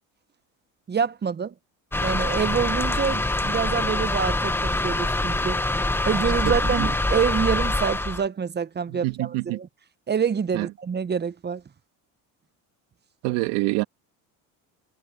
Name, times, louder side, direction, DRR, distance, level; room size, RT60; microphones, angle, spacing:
voice 1, 0.9-1.5 2.0-5.6 6.0-9.7 10.1-11.6, right 7 dB, 25° right, 1.1 m, -26 dB
sound 1, 1.9-8.2, left 2 dB, 5° left, 1.3 m, -25 dB
voice 2, 6.4-6.9 8.9-9.6 10.5-10.7 13.2-13.8, right 21 dB, 80° right, 2.7 m, -26 dB
supercardioid pair, 95°, 39 cm